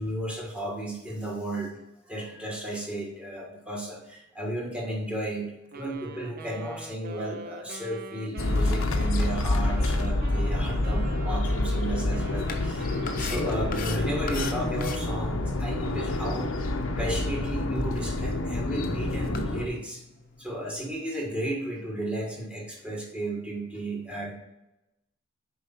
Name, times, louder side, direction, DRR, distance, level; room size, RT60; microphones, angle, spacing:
voice 1, 0.0-1.8 2.1-12.9 13.2-20.0 20.4-24.3, right 1 dB, 5° right, -2 dB, 1.6 m, -34 dB
Wind instrument woodwind instrument, 5.7-15.3, right 3 dB, 45° right, 0.5 m, -44 dB
sound 1, 8.4-19.7, left 2 dB, 75° left, 0.7 m, -27 dB
sound 2, 12.5-20.9, left 5 dB, 40° left, 0.7 m, -43 dB
6.6 x 4.6 x 4.3 m, 0.94 s
head